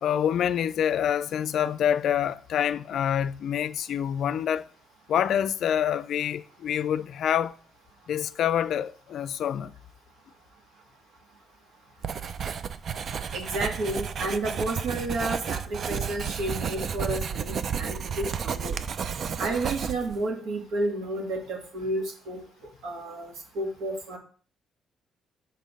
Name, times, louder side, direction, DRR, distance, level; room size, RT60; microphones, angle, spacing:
voice 1, 0.0-4.7 5.1-7.5 8.1-9.7, left 9 dB, 70° left, 0.4 m, -26 dB
Writing, 12.0-20.2, right 7 dB, 55° right, 0.5 m, -32 dB
voice 2, 13.3-18.8 19.4-22.4 22.8-24.2, right 2 dB, 80° right, 1.9 m, -31 dB
6.2 x 4.0 x 5.3 m
cardioid pair, 90°, 0 cm